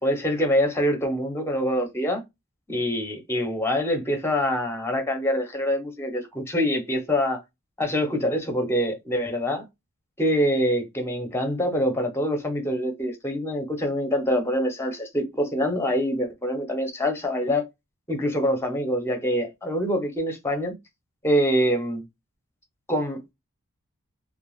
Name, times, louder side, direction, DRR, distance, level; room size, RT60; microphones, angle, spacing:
voice 1, 0.0-2.2 2.7-7.4 7.8-9.6 10.2-17.6 18.1-20.7 21.2-22.0 22.9-23.3, equal, 10° left, 0.7 m, -25 dB
2.3 x 2.1 x 3.1 m
head